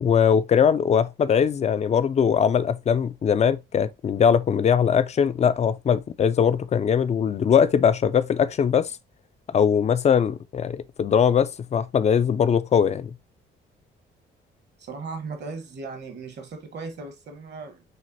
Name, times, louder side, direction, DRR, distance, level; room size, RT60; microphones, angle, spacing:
voice 1, 0.0-9.0 9.5-13.1, left 7 dB, 35° left, 0.4 m, -21 dB
voice 2, 14.8-17.8, right 4 dB, 60° right, 1.2 m, -37 dB
6.3 x 2.5 x 2.6 m
cardioid pair, 90°, 20 cm